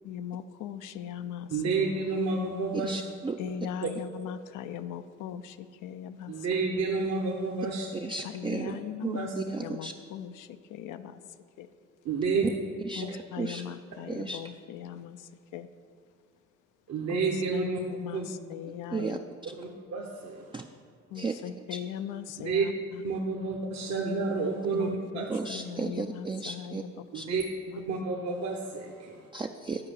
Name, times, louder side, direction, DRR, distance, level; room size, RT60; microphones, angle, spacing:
voice 1, 0.0-1.7 3.4-6.7 8.2-9.3 9.6-11.2 11.6-11.7 12.9-15.7 17.1-19.2 21.1-23.0 24.7-27.4 27.7-27.9, left 9 dB, 80° left, 10 dB, 0.5 m, -39 dB
voice 2, 1.5-3.0 3.8-3.9 6.3-7.9 9.1-9.3 12.0-12.5 16.9-17.8 18.1-18.3 19.6-20.7 22.4-22.7 23.0-25.3 27.1-27.4 27.9-29.3, right 4 dB, 55° right, -1 dB, 1.1 m, -30 dB
voice 3, 2.7-3.4 8.0-8.7 9.0-9.9 12.9-13.6 14.1-14.4 18.9-19.2 20.5-20.7 21.2-21.4 21.7-21.8 25.3-26.8 27.1-27.3 29.3-29.9, right 4 dB, 15° right, 5 dB, 0.4 m, -34 dB
9.8 x 4.7 x 6.9 m, 2.1 s
supercardioid pair, 75°, 31 cm